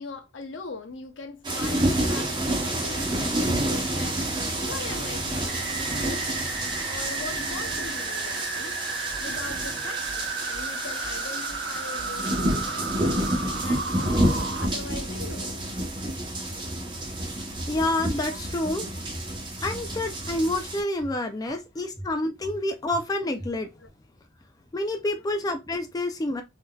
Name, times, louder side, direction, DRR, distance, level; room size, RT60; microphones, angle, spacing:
voice 1, 0.0-6.4 6.9-8.7 9.2-13.3 13.6-15.5 18.3-18.4 21.4-21.9 22.4-22.5 23.8-23.9 25.1-25.2, left 4 dB, 80° left, 0.7 m, -41 dB
sound 1, 1.4-20.8, right 1 dB, 25° right, 0.9 m, -29 dB
sound 2, 5.5-14.7, right 4 dB, 65° right, 0.6 m, -34 dB
sound 3, 9.1-9.7 10.0-10.7 11.0-11.7 11.9-12.6 12.9-13.6 13.8-14.5 14.8-15.5 15.8-16.4 16.7-17.4 17.7-18.3 18.6-19.3 19.6-20.2 20.5-21.2 21.5-21.6 21.9-22.6 22.9-23.0 23.4-23.9, equal, 45° left, 1.2 m, -44 dB
voice 2, 17.7-18.9 19.6-23.7 24.7-26.4, left 1 dB, 20° left, 0.3 m, -28 dB
3.7 x 2.7 x 2.3 m
head